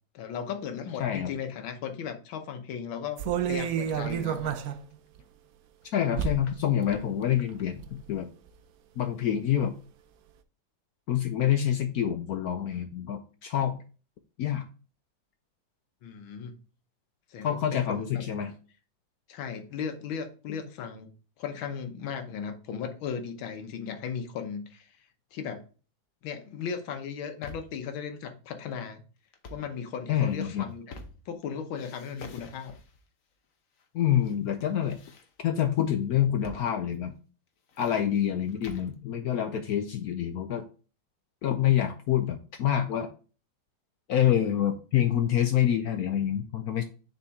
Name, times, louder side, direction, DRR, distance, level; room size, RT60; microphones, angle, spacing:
voice 1, 0.1-4.5 16.0-16.5 17.3-18.2 19.3-21.1 21.4-24.9 25.3-25.6 26.2-29.0 29.5-31.0 31.3-32.7, left 7 dB, 90° left, 1.7 m, -36 dB
voice 2, 1.0-1.3 5.9-8.3 9.0-9.7 11.1-13.8 14.4-14.7 17.4-18.5 30.1-30.7 33.9-35.0 35.4-37.1 37.8-40.6 41.4-43.1 44.1-46.8, left 10 dB, 75° left, 0.8 m, -27 dB
sound 1, 3.2-4.8 5.2-5.3 6.2-6.5 6.8-7.0 7.5-8.0 8.5-8.6, right 8 dB, 75° right, 0.8 m, -30 dB
sound 2, 27.0-27.8 29.3-29.7 30.3-31.4 31.7-33.0 33.8-34.3 34.6-35.6 36.4-36.7 36.9-37.0 37.5-38.9, left 3 dB, 55° left, 1.0 m, -48 dB
6.9 x 4.2 x 3.6 m
omnidirectional pair, 2.1 m